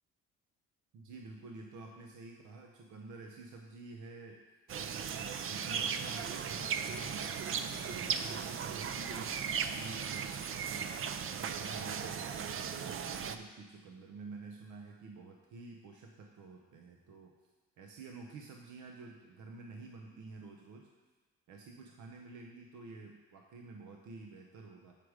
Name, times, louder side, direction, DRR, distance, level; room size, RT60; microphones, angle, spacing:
voice 1, 0.9-4.4 5.1-11.0 11.3-17.4 17.8-20.9 21.5-25.0, right 3 dB, 75° right, 1 dB, 0.8 m, -50 dB
sound 1, 4.7-13.4, right 7 dB, 45° right, 0.5 m, -37 dB
7.6 x 4.9 x 4.8 m, 1.2 s
cardioid pair, 90°, 30 cm